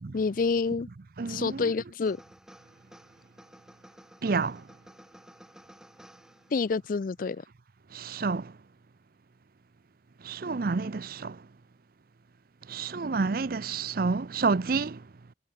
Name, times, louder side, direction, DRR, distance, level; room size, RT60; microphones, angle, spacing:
voice 1, 0.1-0.9 1.3-2.2 6.5-7.4, left 4 dB, 50° left, 0.4 m, -28 dB
voice 2, 1.2-1.7 4.2-4.6 7.9-8.5 10.2-11.4 12.7-15.0, right 4 dB, 50° right, 0.6 m, -29 dB
sound 1, 2.0-6.8, equal, 5° right, 2.2 m, -54 dB
head